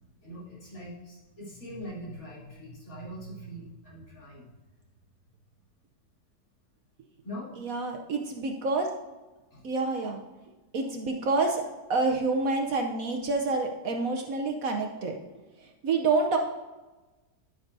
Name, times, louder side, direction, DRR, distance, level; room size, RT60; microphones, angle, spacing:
voice 1, 0.2-4.5 7.2-7.5 9.5-9.6 15.6-15.7, equal, 55° left, -7 dB, 3.6 m, -42 dB
voice 2, 7.6-8.9 9.6-10.2 10.7-11.6 11.9-15.2 15.8-16.4, right 3 dB, 60° right, 2 dB, 1.1 m, -27 dB
10.5 x 8.8 x 2.7 m, 1.2 s
omnidirectional pair, 1.8 m